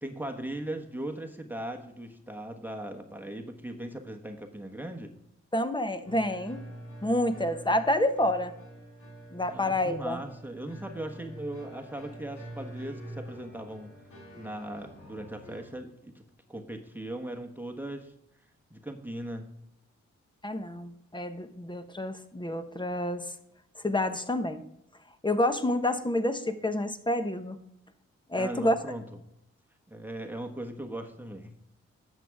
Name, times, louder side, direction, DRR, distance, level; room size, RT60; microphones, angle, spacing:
voice 1, 0.0-5.1 9.5-13.9 14.4-16.2 16.5-18.1 18.7-19.5 28.4-29.0 29.9-31.5, right 1 dB, 5° right, 5 dB, 1.3 m, -38 dB
voice 2, 5.5-6.6 7.0-8.5 9.3-10.2 20.4-23.3 23.8-24.7 25.2-27.6 28.3-28.7, left 1 dB, 15° left, 9 dB, 1.1 m, -28 dB
sound 1, 6.0-15.7, right 1 dB, 80° left, 2.8 m, -46 dB
10.5 x 7.3 x 3.6 m, 0.78 s
supercardioid pair, 45°, 30 cm